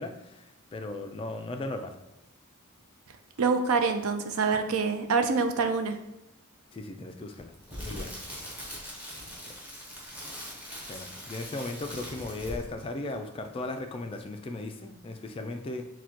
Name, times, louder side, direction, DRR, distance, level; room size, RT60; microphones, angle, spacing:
voice 1, 0.0-2.0 6.7-8.1 9.5-9.6 10.9-15.9, left 2 dB, 25° left, 5 dB, 0.3 m, -37 dB
voice 2, 3.4-6.0, right 4 dB, 70° right, 7 dB, 0.4 m, -26 dB
Crackle, 7.3-12.8 13.1-13.3, equal, 5° right, 0.8 m, -41 dB
6.3 x 2.2 x 2.9 m, 0.95 s
head